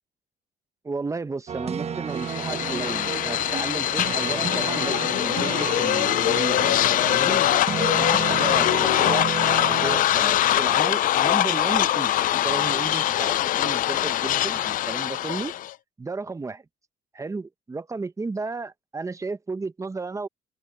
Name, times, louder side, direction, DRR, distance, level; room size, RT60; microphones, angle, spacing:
voice 1, 0.8-6.8 7.0-9.3 9.7-15.5 16.0-16.6 17.1-20.3, right 3 dB, 20° right, 1.0 m, -33 dB
sound 1, 1.5-10.0, right 7 dB, 40° right, 1.0 m, -32 dB
sound 2, 2.2-15.7, left 13 dB, 55° left, 0.4 m, -23 dB
open air
cardioid pair, 110°, 17 cm